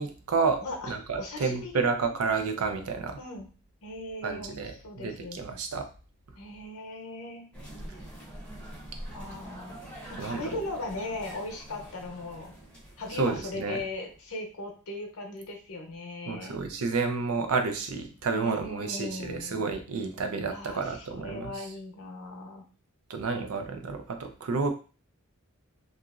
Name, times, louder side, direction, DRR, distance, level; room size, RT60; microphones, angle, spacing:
voice 1, 0.0-0.6 0.9-3.2 4.2-5.9 10.2-10.6 13.1-13.8 16.3-21.7 23.1-24.7, right 4 dB, 75° right, 6 dB, 0.5 m, -30 dB
voice 2, 0.6-1.8 3.2-3.5 3.8-5.4 6.4-7.4 9.1-9.8 10.1-12.5 13.0-16.6 18.3-19.6 20.5-22.7, left 2 dB, 70° left, 2 dB, 0.8 m, -38 dB
sound 1, 7.5-14.2, right 1 dB, 5° left, 0.7 m, -45 dB
2.9 x 2.4 x 2.3 m, 0.36 s
head